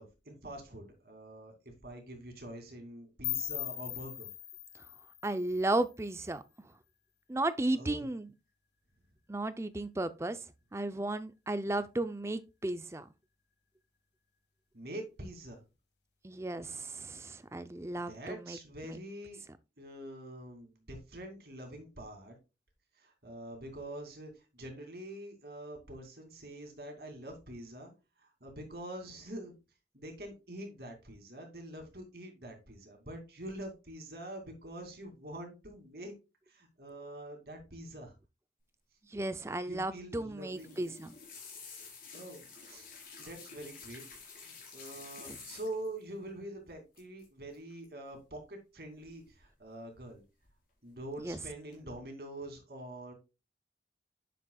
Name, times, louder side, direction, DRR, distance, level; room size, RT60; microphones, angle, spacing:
voice 1, 0.0-4.3 7.7-8.1 14.7-15.6 17.9-19.4 19.8-22.4 23.0-27.9 28.2-29.5 29.9-36.1 36.5-38.1 39.7-40.9 42.1-42.9 43.2-44.0 44.4-50.2 50.8-53.1, right 1 dB, 60° right, 2.6 m, -45 dB
sound 1, 3.2-6.2, left 13 dB, 75° left, 1.4 m, -40 dB
voice 2, 5.2-6.4 7.3-8.3 9.3-10.4 10.7-13.1 16.2-18.6 18.8-19.0 39.1-41.1 45.3-45.4 51.2-51.4, right 2 dB, 15° right, 0.5 m, -34 dB
sound 2, 40.4-46.0 46.9-47.3 47.5-47.8 49.0-49.6 49.9-50.5 50.9-51.3 51.7-51.8, left 5 dB, 50° left, 4.1 m, -50 dB
9.7 x 6.8 x 2.3 m
head